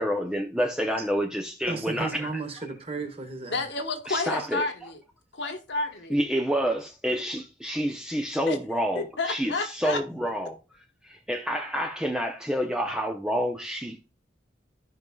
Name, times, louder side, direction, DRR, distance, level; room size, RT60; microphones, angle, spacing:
voice 1, 0.0-2.3 4.1-4.6 6.1-10.6 11.1-14.0, equal, 5° right, 0.6 m, -28 dB
voice 2, 1.7-3.7, right 3 dB, 35° right, 1.4 m, -34 dB
voice 3, 3.5-5.0 5.3-6.2 8.5-8.6 8.9-10.0, left 3 dB, 70° left, 1.2 m, -30 dB
14.0 x 5.3 x 2.3 m
head